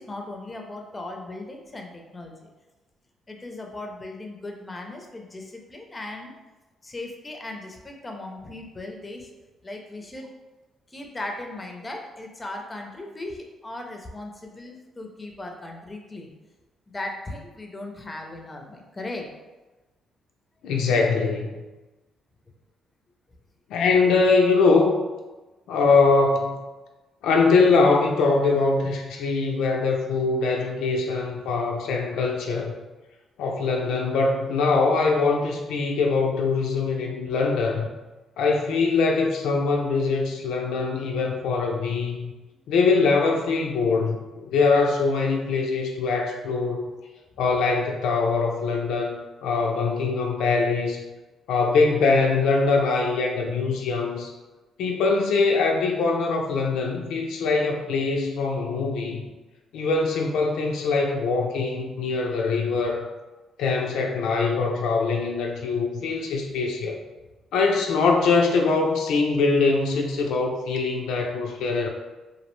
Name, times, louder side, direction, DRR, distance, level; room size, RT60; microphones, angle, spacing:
voice 1, 0.0-2.3 3.3-6.3 6.8-9.3 9.6-10.3 10.9-16.3 16.9-19.3, left 2 dB, 20° left, 2 dB, 0.4 m, -37 dB
voice 2, 20.6-21.6 23.7-24.9 25.7-26.6 27.2-32.7 33.4-37.9 38.4-42.3 42.7-46.9 47.4-51.0 51.5-54.3 54.8-59.2 59.7-63.1 63.6-67.0 67.5-71.9, left 4 dB, 85° left, 1 dB, 0.3 m, -22 dB
2.5 x 2.0 x 3.0 m, 1.1 s
cardioid pair, 90°, 0 cm